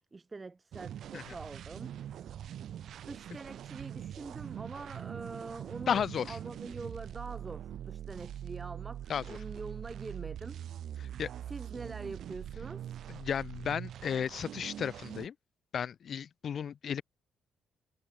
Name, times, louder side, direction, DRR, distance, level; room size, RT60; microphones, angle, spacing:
voice 1, 0.0-2.0 2.4-2.6 3.0-10.6 11.4-13.0, right 3 dB, 25° right, 5.0 m, -44 dB
sound 1, 0.7-15.3, right 10 dB, 70° right, 5.4 m, -43 dB
voice 2, 5.9-6.4 9.1-9.4 11.0-11.3 13.1-15.3 15.7-17.0, left 8 dB, 55° left, 1.0 m, -34 dB
cardioid pair, 90°, 0 cm